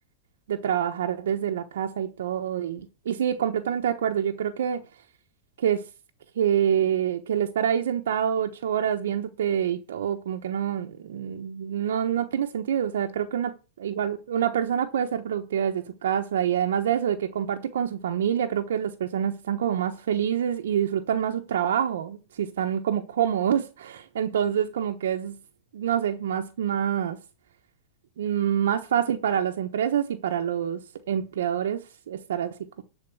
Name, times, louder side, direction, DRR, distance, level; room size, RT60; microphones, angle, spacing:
voice 1, 0.5-4.8 5.6-5.8 6.4-13.5 13.8-25.4 25.7-27.2 28.2-32.8, right 9 dB, 85° right, 1.0 m, -26 dB
12.5 x 4.4 x 8.3 m
supercardioid pair, 155°, 0 cm